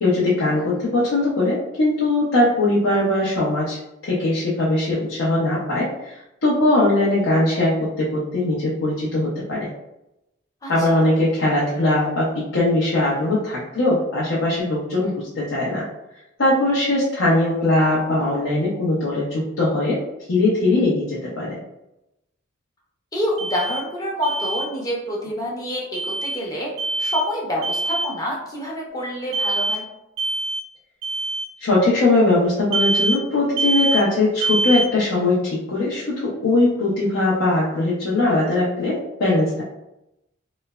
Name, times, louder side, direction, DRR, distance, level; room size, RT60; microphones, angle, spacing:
voice 1, 0.0-9.7 10.7-15.8 16.4-20.0 20.3-21.6 31.6-39.6, left 2 dB, 75° left, -6 dB, 0.6 m, -20 dB
voice 2, 10.6-11.1 15.0-15.1 20.7-20.8 23.1-26.7 27.0-29.8, equal, 15° left, -3 dB, 0.5 m, -27 dB
Alarm, 23.4-23.8 24.2-24.7 25.9-26.4 26.8-27.3 27.6-28.1 29.3-29.8 30.2-30.6 31.0-31.5 32.7-33.2 33.6-34.0 34.4-34.9, right 2 dB, 70° right, 0.4 m, -24 dB
3.1 x 2.0 x 2.3 m, 0.89 s
head